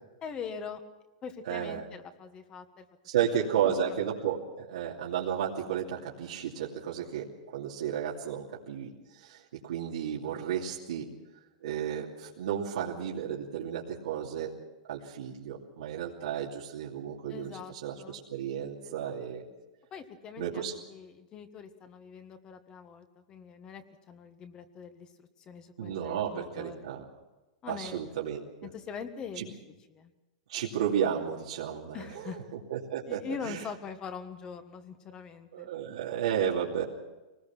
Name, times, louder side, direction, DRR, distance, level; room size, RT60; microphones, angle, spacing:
voice 1, 0.2-0.8 1.2-2.8 3.4-4.0 17.3-18.2 18.8-19.2 19.9-26.9 27.6-28.3 28.6-29.5 29.9-30.1 31.9-32.4 33.1-35.7, left 6 dB, 20° left, 9 dB, 1.5 m, -43 dB
voice 2, 1.4-1.8 3.0-7.3 7.5-11.0 11.6-14.5 14.9-19.4 20.4-20.7 25.8-27.1 27.7-28.4 29.4-29.5 30.5-33.6 35.5-36.8, right 9 dB, 85° right, -5 dB, 2.8 m, -33 dB
24.0 x 19.5 x 6.1 m, 1.1 s
supercardioid pair, 160°, 4 cm